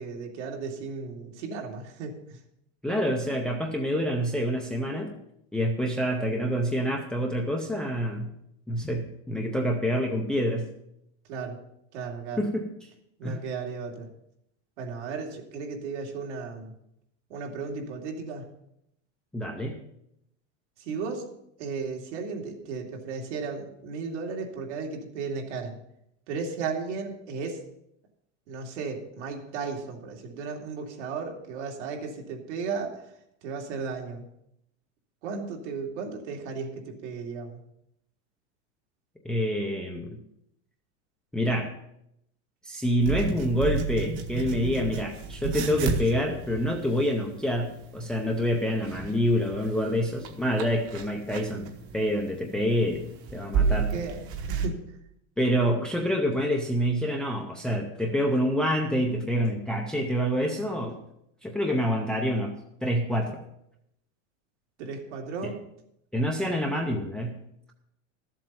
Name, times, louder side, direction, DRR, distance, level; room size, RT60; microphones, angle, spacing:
voice 1, 0.0-2.4 11.3-11.6 11.9-12.4 13.2-14.1 14.8-16.7 17.3-18.5 20.8-25.7 26.3-27.6 28.5-33.1 33.4-34.3 35.2-37.6 53.5-55.0 64.8-65.6, right 5 dB, 70° right, 1 dB, 2.7 m, -35 dB
voice 2, 2.8-5.1 5.5-8.3 8.7-10.7 12.4-12.7 13.2-13.4 19.3-19.8 39.2-40.2 41.3-41.7 42.6-53.0 53.3-53.9 55.4-61.0 61.4-62.5 62.8-63.4 66.1-67.4, equal, ahead, 1 dB, 0.5 m, -27 dB
sound 1, 43.0-54.7, right 5 dB, 35° right, 1.2 m, -32 dB
13.0 x 7.6 x 5.5 m, 0.78 s
supercardioid pair, 170°, 37 cm